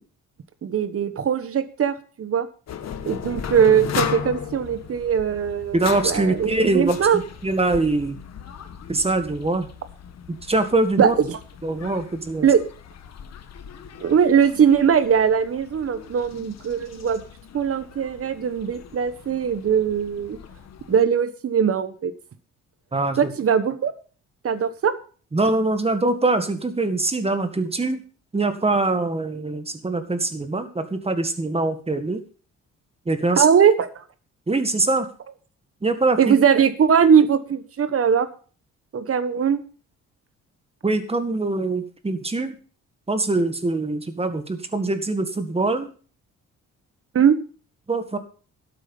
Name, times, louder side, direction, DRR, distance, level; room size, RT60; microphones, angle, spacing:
voice 1, 0.6-2.5 3.0-7.2 11.0-11.4 12.4-12.6 14.0-17.2 17.5-20.4 20.9-22.1 23.2-23.9 24.4-24.9 33.4-34.0 36.2-38.3 38.9-39.6 47.1-47.4, right 7 dB, 50° right, 12 dB, 1.3 m, -20 dB
sound 1, 2.7-21.0, left 8 dB, 60° left, 1.5 m, -37 dB
voice 2, 5.7-8.2 8.9-9.7 10.3-11.1 11.6-12.5 22.9-23.3 25.3-28.0 28.3-32.2 33.0-33.4 34.5-35.1 35.8-36.3 40.8-42.5 43.1-45.9 47.9-48.2, right 2 dB, 20° right, 9 dB, 1.8 m, -23 dB
12.0 x 8.3 x 5.4 m, 0.41 s
cardioid pair, 90°, 30 cm